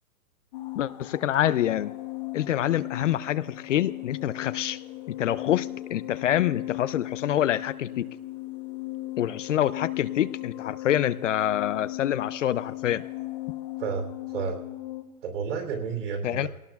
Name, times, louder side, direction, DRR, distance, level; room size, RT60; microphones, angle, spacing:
sound 1, 0.5-15.0, left 18 dB, 35° left, 1.3 m, -37 dB
voice 1, 0.8-1.9 2.3-4.8 5.1-8.1 9.2-13.0 16.2-16.5, left 11 dB, 60° left, 17 dB, 0.5 m, -26 dB
voice 2, 13.8-14.7 15.2-16.5, right 6 dB, 55° right, 3 dB, 3.1 m, -31 dB
21.5 x 18.0 x 2.3 m, 1.2 s
hypercardioid pair, 155°, 43 cm